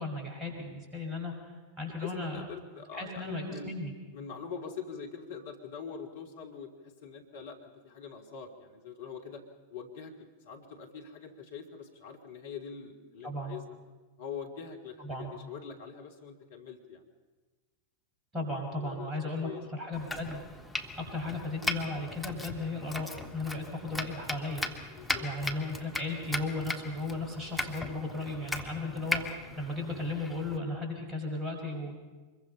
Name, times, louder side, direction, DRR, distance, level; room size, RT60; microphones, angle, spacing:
voice 1, 0.0-1.3 1.8-2.4 2.9-3.9 13.2-13.6 15.0-15.3 18.3-20.4 20.8-24.7 25.2-31.9, left 2 dB, 20° right, 2 dB, 5.7 m, -35 dB
voice 2, 2.0-3.7 4.1-9.4 9.7-13.6 14.2-17.1 18.7-19.6 24.9-25.6, left 6 dB, 60° left, 3 dB, 2.7 m, -44 dB
Domestic sounds home sounds, 19.9-30.6, left 1 dB, ahead, 1.5 m, -38 dB
25.0 x 22.0 x 5.6 m, 1.3 s
figure-of-eight pair, 90°, 0 cm